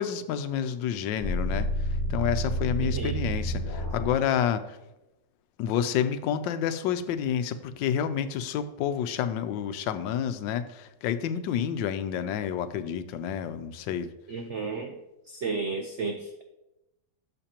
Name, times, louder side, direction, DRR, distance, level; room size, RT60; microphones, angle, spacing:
voice 1, 0.0-4.8 5.6-14.1, left 9 dB, 85° left, 11 dB, 1.3 m, -29 dB
sound 1, 1.2-4.1, equal, 40° left, 3.0 m, -29 dB
voice 2, 2.8-3.1 14.3-14.9 15.3-16.4, right 4 dB, 90° right, 5 dB, 0.6 m, -33 dB
12.0 x 6.6 x 2.9 m, 0.95 s
omnidirectional pair, 2.0 m